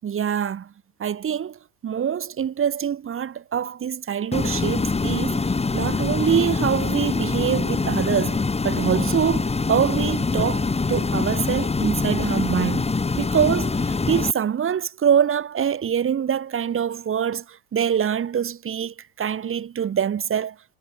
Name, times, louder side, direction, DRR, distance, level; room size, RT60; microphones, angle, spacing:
voice 1, 0.0-0.7 1.0-12.9 13.2-20.5, right 8 dB, 30° right, 6.7 m, -25 dB
sound 1, 4.3-14.3, left 4 dB, 15° left, 7.5 m, -24 dB
hypercardioid pair, 100°, 44 cm